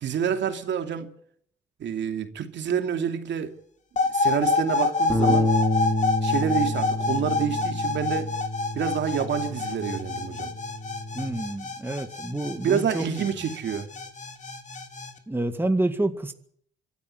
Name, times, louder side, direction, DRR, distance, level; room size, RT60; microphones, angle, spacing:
voice 1, 0.0-1.1 1.8-3.5 4.1-5.5 6.2-8.3 8.7-10.5 12.6-13.9, right 8 dB, 65° right, 2.7 m, -28 dB
sound 1, 4.0-15.1, left 3 dB, 35° left, 3.2 m, -28 dB
Bass guitar, 5.1-11.3, left 1 dB, 15° left, 4.4 m, -29 dB
voice 2, 11.1-13.0 15.3-16.3, right 2 dB, 10° right, 2.0 m, -28 dB
25.0 x 12.5 x 9.4 m
cardioid pair, 90°, 20 cm